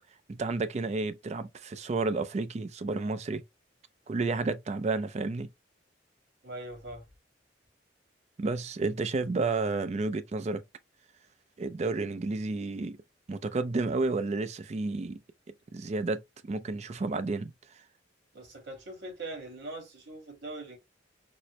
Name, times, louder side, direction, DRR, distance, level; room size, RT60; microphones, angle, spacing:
voice 1, 0.3-3.4 4.1-5.5 8.4-10.6 11.6-13.0 13.3-15.2 15.7-17.5, right 3 dB, 35° right, 0.4 m, -31 dB
voice 2, 6.4-7.0 18.3-20.8, right 2 dB, 70° right, 1.7 m, -41 dB
4.2 x 2.0 x 3.0 m
head